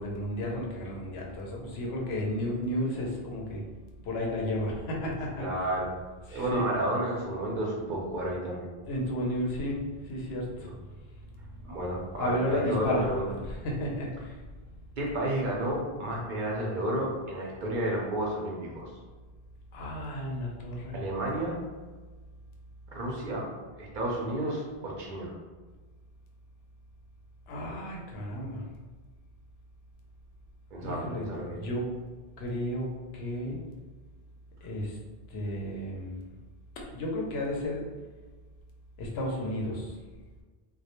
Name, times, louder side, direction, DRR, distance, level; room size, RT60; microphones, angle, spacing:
voice 1, 0.0-3.6 4.0-5.5 6.3-6.7 8.9-10.7 12.2-13.0 13.5-14.4 19.7-21.0 27.5-28.6 30.8-31.9 32.4-33.6 34.6-35.0 35.3-36.1 36.9-37.8 39.0-39.9, left 1 dB, 80° left, -1 dB, 0.8 m, -32 dB
voice 2, 5.4-5.9 6.3-8.7 10.6-10.7 11.6-13.2 15.0-18.9 20.9-21.6 22.9-23.5 23.8-25.3 30.7-31.6, right 1 dB, 60° right, -3 dB, 0.7 m, -31 dB
2.2 x 2.0 x 2.8 m, 1.3 s
omnidirectional pair, 1.0 m